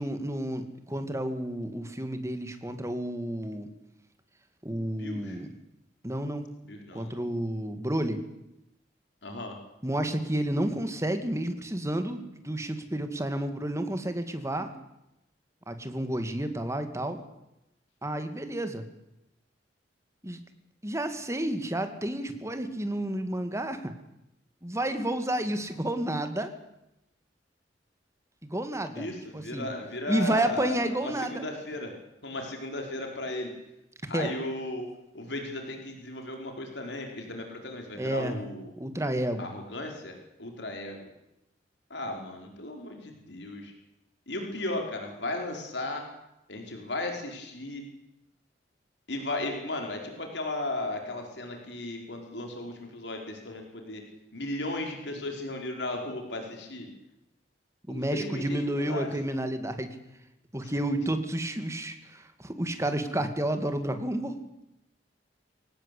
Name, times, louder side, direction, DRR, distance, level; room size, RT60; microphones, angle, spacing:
voice 1, 0.0-3.7 4.6-5.5 6.0-6.5 6.9-8.2 9.8-14.7 15.7-17.2 18.0-18.9 20.2-20.4 20.8-23.9 24.6-26.5 28.4-29.7 30.1-31.4 34.1-34.3 37.9-38.4 38.8-39.5 57.9-60.0 60.5-64.4, right 1 dB, 15° right, 8 dB, 2.4 m, -31 dB
voice 2, 5.0-5.4 6.6-7.1 9.2-9.6 28.9-31.9 32.2-33.5 34.1-34.9 35.1-38.7 39.4-40.1 40.4-41.1 41.9-43.7 44.3-46.0 46.5-47.8 49.1-54.0 54.3-56.9 57.9-59.1 60.6-60.7, left 2 dB, 70° left, 3 dB, 4.8 m, -35 dB
24.0 x 18.5 x 8.6 m, 0.86 s
head